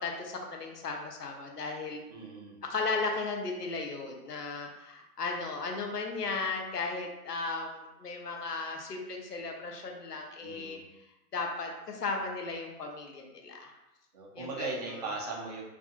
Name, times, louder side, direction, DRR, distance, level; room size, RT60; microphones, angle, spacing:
voice 1, 0.0-2.0 2.7-10.8 11.3-13.7 14.4-14.7, left 3 dB, 85° left, 2 dB, 0.7 m, -35 dB
voice 2, 2.1-2.6 10.4-10.8 14.1-15.6, right 3 dB, 30° right, -4 dB, 0.4 m, -38 dB
2.6 x 2.4 x 2.5 m, 0.97 s
figure-of-eight pair, 120°, 47 cm